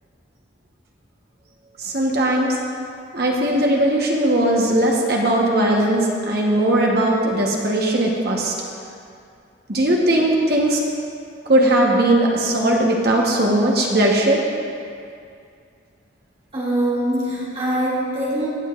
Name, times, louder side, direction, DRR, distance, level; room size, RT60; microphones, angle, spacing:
voice 1, 1.8-2.6 3.1-8.5 9.7-10.8 11.5-14.4, right 1 dB, 55° right, -1 dB, 1.2 m, -18 dB
voice 2, 16.5-18.5, right 1 dB, 30° right, -9 dB, 2.4 m, -23 dB
16.0 x 7.0 x 2.5 m, 2.4 s
head